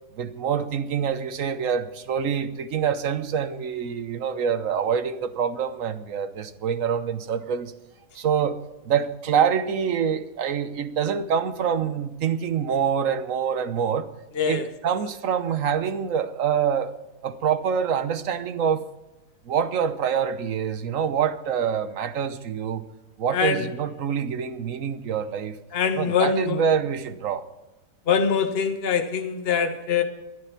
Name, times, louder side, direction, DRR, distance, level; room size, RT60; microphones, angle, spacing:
voice 1, 0.1-7.7 8.1-8.6 8.8-14.1 14.5-16.9 17.2-18.8 19.4-22.8 23.2-25.6 26.0-27.4, right 7 dB, 60° right, 1.3 m, -26 dB
voice 2, 14.3-14.7 23.3-23.7 25.7-26.6 28.1-30.0, left 6 dB, 40° left, 1.4 m, -23 dB
13.5 x 11.0 x 5.9 m
omnidirectional pair, 1.7 m